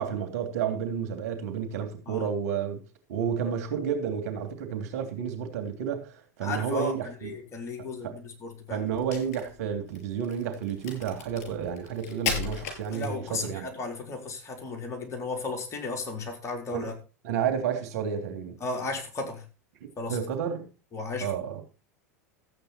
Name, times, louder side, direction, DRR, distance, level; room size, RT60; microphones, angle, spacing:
voice 1, 0.0-2.8 3.1-7.3 7.8-8.1 8.7-13.6 16.7-16.9 17.2-18.6 19.8-20.6 21.2-21.6, right 7 dB, 70° right, 3.1 m, -31 dB
voice 2, 6.4-6.9 7.2-8.9 12.9-16.9 18.6-19.4 20.0-20.2 20.9-21.3, left 3 dB, 35° left, 4.2 m, -34 dB
Crack, 8.9-13.5, left 7 dB, 65° left, 5.7 m, -36 dB
14.0 x 8.8 x 4.4 m
hypercardioid pair, 95°, 9 cm